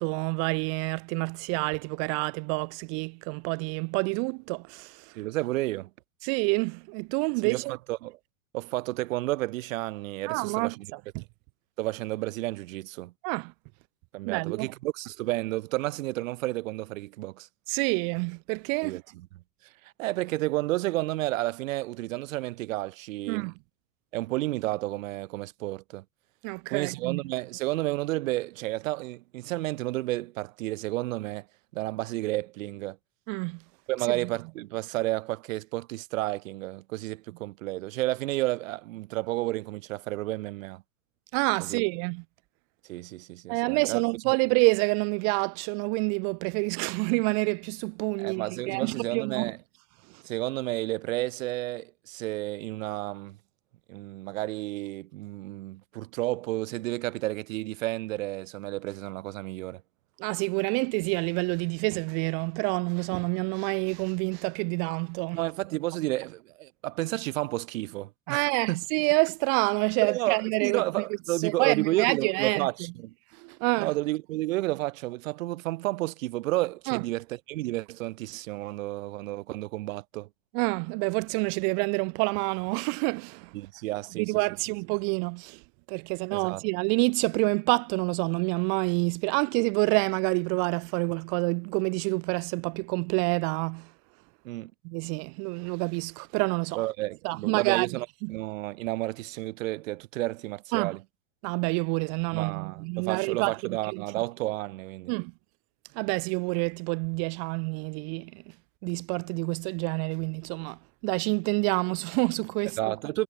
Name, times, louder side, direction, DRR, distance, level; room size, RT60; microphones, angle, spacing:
voice 1, 0.0-5.1 6.2-7.6 10.3-11.2 13.2-13.5 14.2-14.7 17.7-19.0 23.3-23.5 26.4-27.2 33.3-33.6 34.2-34.3 41.3-42.2 43.5-49.5 50.1-50.2 60.2-65.4 68.3-71.0 71.4-72.7 73.4-73.9 76.9-77.0 80.5-83.5 84.1-85.6 85.9-93.9 94.8-96.8 97.2-97.9 98.2-98.3 100.7-101.0 101.4-104.0 105.1-105.3 105.9-108.4 108.8-112.8, right 40 dB or more, 40° right, 0.6 m, -28 dB
voice 2, 5.1-5.9 7.4-8.2 8.5-10.8 11.8-13.1 14.1-17.5 18.8-19.3 19.8-23.5 24.1-26.0 26.7-31.5 31.7-33.0 33.9-40.8 41.7-41.8 42.9-44.0 48.2-49.6 50.2-53.4 53.9-59.8 65.3-68.9 70.0-73.1 73.8-80.3 83.5-84.4 86.3-86.7 94.4-94.7 96.7-101.0 102.3-105.1 112.8-113.2, right 18 dB, 75° right, 2.6 m, -31 dB
supercardioid pair, 160°, 40 cm